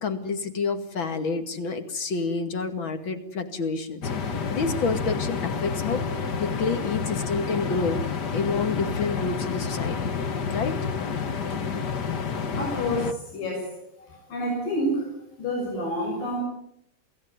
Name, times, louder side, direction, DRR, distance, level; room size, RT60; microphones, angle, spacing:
voice 1, 0.0-6.1 6.4-10.1 10.5-10.8 11.5-11.6, left 4 dB, 40° left, 8 dB, 2.5 m, -29 dB
sound 1, 4.0-13.1, left 5 dB, 60° left, 1.1 m, -29 dB
voice 2, 12.6-13.7 14.1-16.4, equal, 75° left, -1 dB, 8.6 m, -29 dB
28.0 x 18.0 x 9.6 m, 0.76 s
omnidirectional pair, 4.0 m